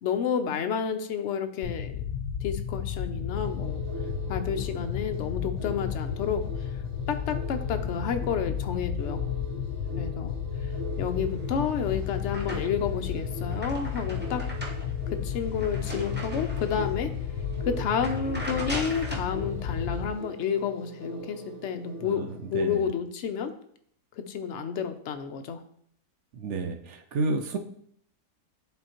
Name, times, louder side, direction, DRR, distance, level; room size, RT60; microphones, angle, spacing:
voice 1, 0.0-2.0 2.4-3.8 4.3-6.4 7.1-9.2 10.0-10.3 11.0-14.4 15.1-17.1 17.6-23.5 24.2-25.6, left 7 dB, 60° left, 7 dB, 0.8 m, -30 dB
sound 1, 1.6-20.1, left 8 dB, 90° left, 1.2 m, -33 dB
sound 2, 3.3-22.7, right 1 dB, 80° right, 3.0 m, -43 dB
sound 3, 11.4-13.0 13.3-17.0 17.4-17.6 17.9-19.3, right 1 dB, 10° right, 0.6 m, -39 dB
voice 2, 22.0-22.9 26.3-27.6, right 3 dB, 65° right, 6 dB, 0.7 m, -31 dB
10.0 x 3.8 x 2.9 m, 0.66 s
omnidirectional pair, 1.7 m